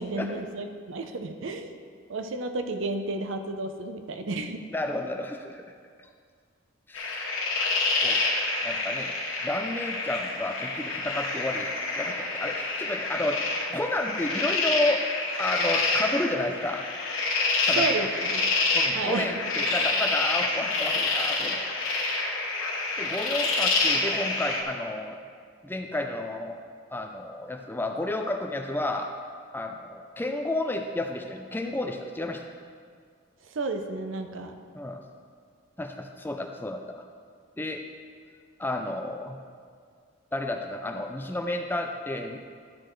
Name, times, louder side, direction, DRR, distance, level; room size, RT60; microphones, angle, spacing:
voice 1, 0.0-1.7 2.1-4.6 17.8-18.1 18.3-18.5 18.9-19.3 33.5-34.6, right 3 dB, 70° right, 6 dB, 0.6 m, -32 dB
voice 2, 4.7-5.6 6.9-7.2 8.0-8.2 8.6-9.1 9.4-15.0 15.4-16.8 17.7-18.1 18.7-22.0 23.0-25.2 25.6-26.6 26.9-29.1 29.5-32.5 34.7-35.0 35.8-37.0 37.6-37.8 38.6-39.4 40.3-42.4, left 1 dB, 10° left, 4 dB, 0.4 m, -31 dB
sound 1, 6.9-24.6, left 3 dB, 85° left, 1.4 m, -27 dB
12.0 x 6.7 x 3.1 m, 2.1 s
head